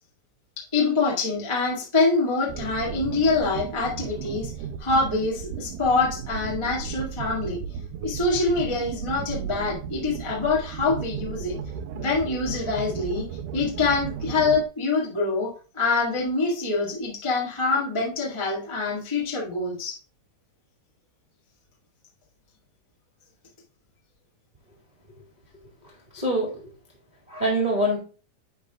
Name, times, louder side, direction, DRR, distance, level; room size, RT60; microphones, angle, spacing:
voice 1, 0.6-4.5 4.8-7.6 8.0-11.5 11.9-13.3 13.5-20.0, left 3 dB, 15° left, -5 dB, 1.1 m, -25 dB
sound 1, 2.5-14.6, right 8 dB, 80° right, 1.9 m, -35 dB
voice 2, 25.8-26.7 27.3-28.0, right 1 dB, 15° right, -4 dB, 1.4 m, -25 dB
10.0 x 4.1 x 3.5 m, 0.36 s
omnidirectional pair, 4.0 m